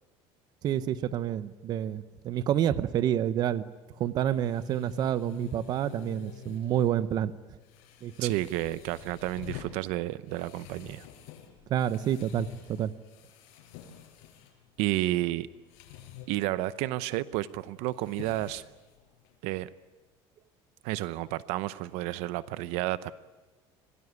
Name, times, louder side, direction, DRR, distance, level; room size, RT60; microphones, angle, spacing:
voice 1, 0.6-3.7 4.0-7.3 8.0-8.3 11.7-12.9, right 10 dB, 40° right, 15 dB, 0.8 m, -28 dB
sound 1, 3.2-19.4, left 10 dB, 85° left, 5.4 m, -48 dB
voice 2, 8.2-11.1 14.8-15.5 16.3-18.6 19.4-19.7 20.8-23.1, right 16 dB, 70° right, 16 dB, 0.7 m, -31 dB
26.5 x 18.0 x 9.5 m, 1.2 s
cardioid pair, 165°, 11 cm